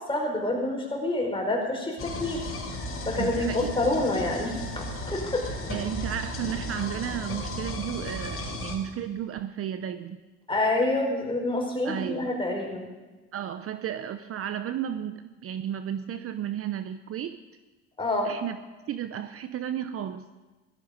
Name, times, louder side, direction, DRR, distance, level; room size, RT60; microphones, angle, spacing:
voice 1, 0.1-2.5 3.0-5.5 10.5-12.9 18.0-18.3, left 2 dB, 15° left, 0 dB, 5.2 m, -27 dB
sound 1, 2.0-8.8, left 1 dB, 40° left, 4.2 m, -35 dB
voice 2, 3.2-3.7 5.4-10.2 11.8-12.3 13.3-17.4 18.2-18.6 18.9-20.2, right 10 dB, 45° right, 11 dB, 0.8 m, -33 dB
16.5 x 13.5 x 5.3 m, 1.2 s
supercardioid pair, 85°, 33 cm